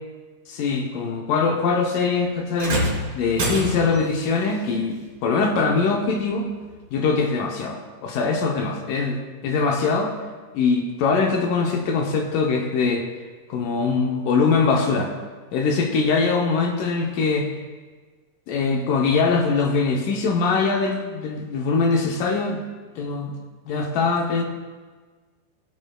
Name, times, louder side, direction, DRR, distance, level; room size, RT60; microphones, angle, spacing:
voice 1, 0.5-2.9 3.1-6.5 6.9-10.1 10.5-13.0 13.5-15.1 15.5-17.5 18.5-22.6 23.0-23.4 23.7-24.4, left 4 dB, 75° left, 2 dB, 2.1 m, -22 dB
sound 1, 2.6-4.1 5.6-5.7 6.6-6.7, right 1 dB, 40° right, 2.8 m, -26 dB
17.5 x 7.7 x 2.3 m, 1.4 s
omnidirectional pair, 4.5 m